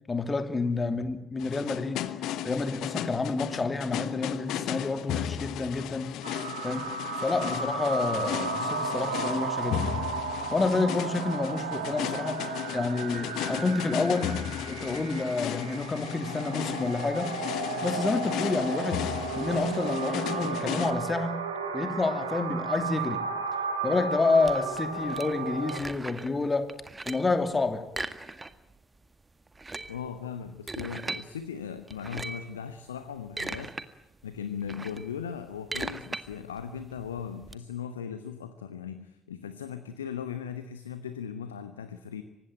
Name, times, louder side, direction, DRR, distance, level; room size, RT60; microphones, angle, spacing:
voice 1, 0.1-2.1 2.4-6.1 6.6-6.9 7.2-10.1 10.5-14.4 14.7-17.4 17.8-21.4 21.7-23.2 23.8-26.7 27.0-27.9, left 3 dB, 25° left, 2.7 m, -29 dB
sound 1, 1.4-20.9, left 11 dB, 60° left, 1.3 m, -35 dB
sound 2, 6.2-25.8, right 4 dB, 80° right, 2.3 m, -34 dB
sound 3, 24.4-26.4 26.7-27.4 27.9-28.8 29.0-29.1 29.5-31.3 31.9-32.5 33.0-33.9 34.2-37.6, right 3 dB, 20° right, 1.8 m, -38 dB
voice 2, 29.9-34.0 34.2-42.2, left 7 dB, 80° left, 1.0 m, -38 dB
24.5 x 19.5 x 8.9 m
figure-of-eight pair, 45°, 0 cm